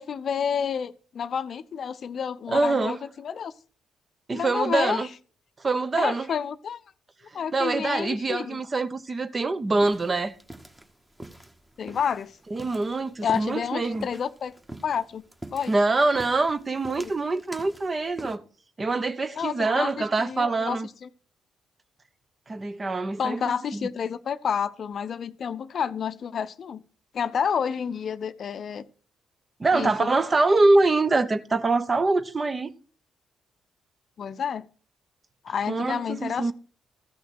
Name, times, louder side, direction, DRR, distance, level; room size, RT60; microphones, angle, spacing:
voice 1, 0.0-3.5 4.3-5.1 6.0-6.8 7.3-8.6 11.8-12.4 13.2-14.5 14.8-15.2 15.5-15.7 16.9-17.1 19.4-21.1 23.2-26.8 27.1-28.8 29.7-30.1 34.2-34.7 35.4-36.5, left 7 dB, 50° left, 0.6 m, -29 dB
voice 2, 2.5-3.0 4.3-5.1 5.6-6.3 7.5-10.4 12.5-14.1 15.7-18.4 18.8-20.9 22.5-23.9 29.6-32.7 35.7-36.5, right 3 dB, 35° right, 1.0 m, -24 dB
sound 1, 9.8-18.4, right 1 dB, 15° right, 1.6 m, -45 dB
14.5 x 6.3 x 6.3 m
figure-of-eight pair, 40°, 0 cm